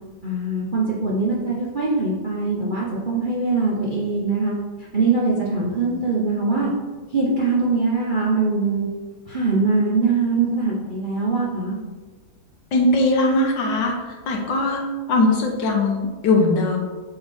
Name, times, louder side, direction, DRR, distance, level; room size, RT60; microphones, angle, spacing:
voice 1, 0.2-4.6 4.9-6.7 7.1-8.9 9.3-11.8, right 3 dB, 40° right, -5 dB, 0.7 m, -22 dB
voice 2, 12.7-13.9 14.3-14.8 15.1-16.8, left 2 dB, 75° left, 1 dB, 1.7 m, -20 dB
7.7 x 3.9 x 3.6 m, 1.3 s
omnidirectional pair, 2.0 m